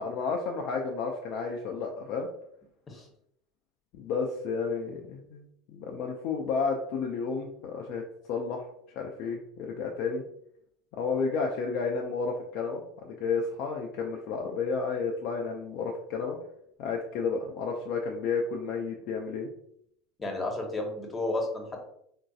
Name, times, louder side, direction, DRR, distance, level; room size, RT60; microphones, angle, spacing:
voice 1, 0.0-2.3 3.9-8.0 8.3-8.7 9.0-10.2 10.9-16.4 16.8-19.5, left 5 dB, 60° left, 1 dB, 0.4 m, -31 dB
voice 2, 20.2-21.8, left 2 dB, 25° left, 2 dB, 0.9 m, -32 dB
3.7 x 2.6 x 2.3 m, 0.71 s
hypercardioid pair, 80°, 0 cm